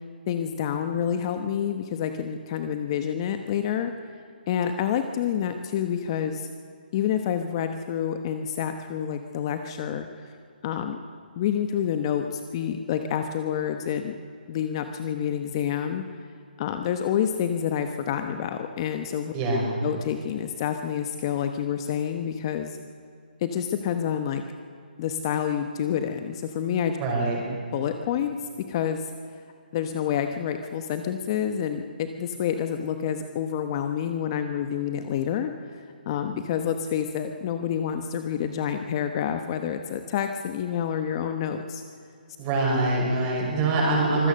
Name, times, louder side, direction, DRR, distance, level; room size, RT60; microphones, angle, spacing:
voice 1, 0.3-3.9 4.5-6.5 6.9-10.3 10.6-11.0 11.4-14.1 14.5-16.0 16.6-19.3 19.8-22.8 23.4-24.4 25.0-27.0 27.7-28.4 28.7-29.1 29.7-41.8, left 9 dB, 30° left, 7 dB, 1.1 m, -28 dB
voice 2, 19.3-19.7 27.0-27.4 42.4-44.3, right 2 dB, 20° right, -2 dB, 6.2 m, -24 dB
25.0 x 17.5 x 6.6 m, 2.5 s
hypercardioid pair, 155°, 5 cm